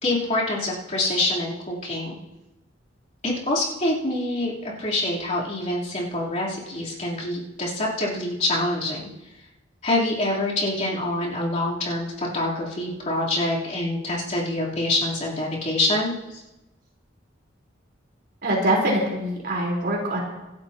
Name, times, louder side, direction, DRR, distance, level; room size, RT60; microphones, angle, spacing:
voice 1, 0.0-2.2 3.2-9.1 9.8-16.4, left 1 dB, 40° left, -6 dB, 3.7 m, -26 dB
voice 2, 18.4-20.2, right 1 dB, 55° right, -3 dB, 4.3 m, -23 dB
26.0 x 12.0 x 3.0 m, 0.99 s
head